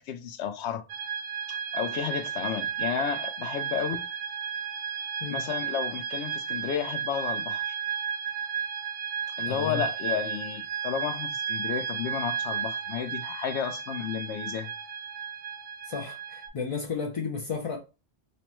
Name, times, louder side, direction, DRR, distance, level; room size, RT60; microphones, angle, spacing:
voice 1, 0.1-0.8 1.5-4.0 5.3-7.8 9.4-14.7, left 8 dB, 80° left, 0.9 m, -32 dB
sound 1, 0.9-16.5, right 7 dB, 65° right, 0.8 m, -33 dB
voice 2, 9.4-9.8 15.8-17.8, left 5 dB, 50° left, 0.4 m, -33 dB
5.3 x 2.1 x 2.9 m
omnidirectional pair, 1.1 m